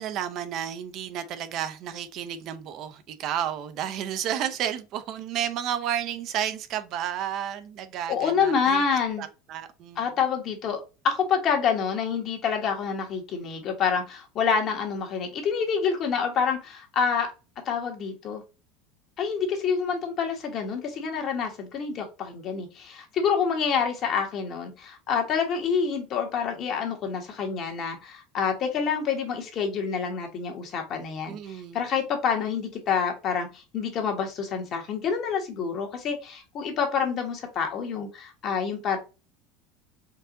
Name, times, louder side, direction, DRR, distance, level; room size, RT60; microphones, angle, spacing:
voice 1, 0.0-8.8 9.2-10.0 31.3-31.8, right 10 dB, 50° right, 0.6 m, -32 dB
voice 2, 8.1-9.2 10.0-17.3 17.6-18.4 19.2-39.0, left 6 dB, 45° left, 1.4 m, -27 dB
4.6 x 2.5 x 3.8 m
supercardioid pair, 115°, 0 cm